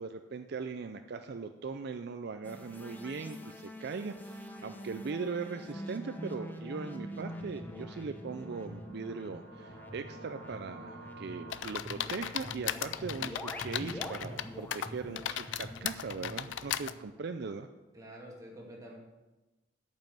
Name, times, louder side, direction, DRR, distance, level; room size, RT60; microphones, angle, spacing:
voice 1, 0.0-17.7, right 4 dB, 60° right, 8 dB, 0.4 m, -40 dB
sound 1, 2.4-17.2, equal, 10° left, 0.7 m, -45 dB
sound 2, 7.6-11.6, right 2 dB, 50° left, 2.0 m, -51 dB
sound 3, 11.5-14.4 14.7-16.9, left 10 dB, 75° left, 0.4 m, -36 dB
voice 2, 17.9-19.0, equal, 20° right, -2 dB, 2.1 m, -48 dB
9.0 x 5.6 x 7.8 m, 1.1 s
head